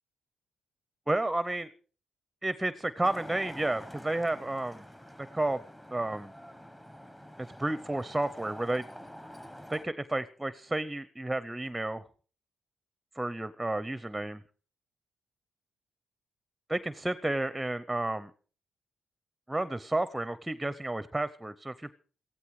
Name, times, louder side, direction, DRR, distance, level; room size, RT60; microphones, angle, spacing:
voice 1, 1.1-1.7 2.4-4.8 5.3-5.6 5.9-6.3 7.6-8.9 9.7-12.0 13.1-14.4 16.7-18.3 19.5-21.9, right 2 dB, 10° right, 15 dB, 0.7 m, -31 dB
Traffic noise roadway noise, 3.0-9.9, equal, 10° left, 1.3 m, -47 dB
16.0 x 14.5 x 4.9 m, 0.41 s
cardioid pair, 95°, 0 cm